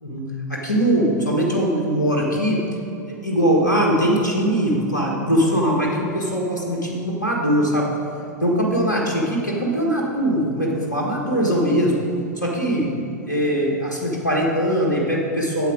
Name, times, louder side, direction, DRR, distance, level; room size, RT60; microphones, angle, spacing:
voice 1, 0.0-2.6 3.1-7.9 8.4-11.9 12.4-12.9 13.2-15.7, equal, 85° left, -2 dB, 1.5 m, -21 dB
8.0 x 7.9 x 5.0 m, 2.9 s
figure-of-eight pair, 100°, 10 cm